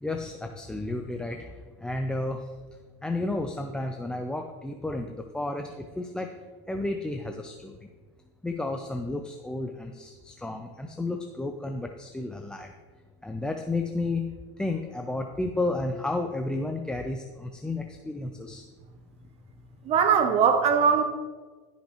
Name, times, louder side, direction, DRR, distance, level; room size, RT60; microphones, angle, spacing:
voice 1, 0.0-1.5 1.8-2.4 3.0-6.3 6.7-7.8 8.4-12.7 13.2-14.3 14.6-18.6, left 2 dB, 5° left, 4 dB, 0.5 m, -32 dB
voice 2, 19.9-21.0, right 6 dB, 40° right, 6 dB, 0.7 m, -21 dB
14.5 x 5.7 x 3.0 m, 1.4 s
supercardioid pair, 110°, 16 cm